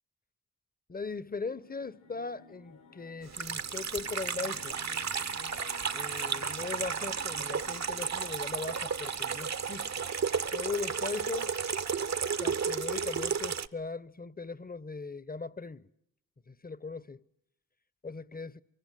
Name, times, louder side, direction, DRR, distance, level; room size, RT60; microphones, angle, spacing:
voice 1, 0.9-4.8 5.9-10.1 10.5-11.6 12.4-15.9 16.5-17.2 18.0-18.6, left 4 dB, 25° left, 1.0 m, -39 dB
sound 1, 1.3-10.5, left 5 dB, 65° left, 1.8 m, -54 dB
Water tap faucet / Sink (filling or washing), 3.3-13.7, right 6 dB, 50° right, 1.0 m, -33 dB
24.0 x 23.0 x 9.1 m
cardioid pair, 50°, 34 cm